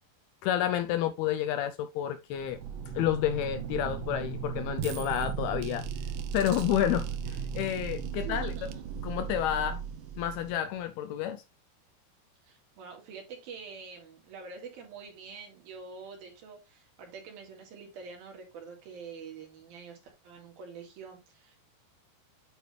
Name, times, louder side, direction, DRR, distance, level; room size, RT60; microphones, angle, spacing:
voice 1, 0.4-2.6 3.0-5.8 6.3-8.7 9.0-9.8 10.2-11.4, left 11 dB, 80° left, 2.3 m, -30 dB
sound 1, 2.3-10.8, right 7 dB, 80° right, 2.0 m, -36 dB
voice 2, 8.2-8.9 12.4-21.6, right 5 dB, 65° right, 3.8 m, -46 dB
9.1 x 4.9 x 3.3 m
omnidirectional pair, 4.9 m